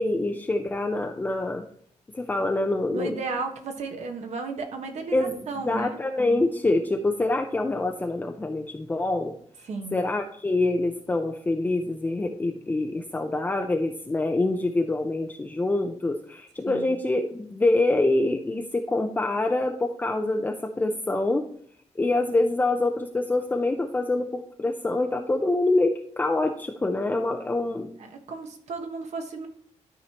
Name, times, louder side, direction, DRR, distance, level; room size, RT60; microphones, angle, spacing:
voice 1, 0.0-1.6 2.1-3.2 5.1-9.3 9.9-21.5 22.0-27.9, left 2 dB, 15° left, 3 dB, 0.6 m, -25 dB
voice 2, 2.9-6.0 9.7-10.0 16.7-16.9 28.0-29.5, right 4 dB, 70° right, 4 dB, 1.4 m, -34 dB
12.5 x 4.7 x 2.9 m, 0.62 s
wide cardioid pair, 145°, 12 cm